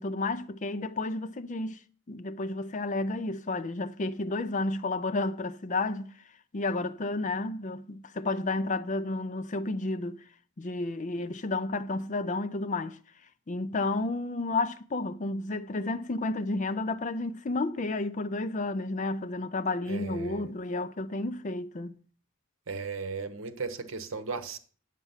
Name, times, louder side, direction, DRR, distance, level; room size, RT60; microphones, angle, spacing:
voice 1, 0.0-1.8 2.1-6.1 6.5-10.2 10.6-13.0 13.5-22.0, left 2 dB, 35° left, 0.5 m, -31 dB
voice 2, 19.9-20.5 22.7-24.6, right 4 dB, 65° right, 1.0 m, -36 dB
9.2 x 7.5 x 5.6 m
head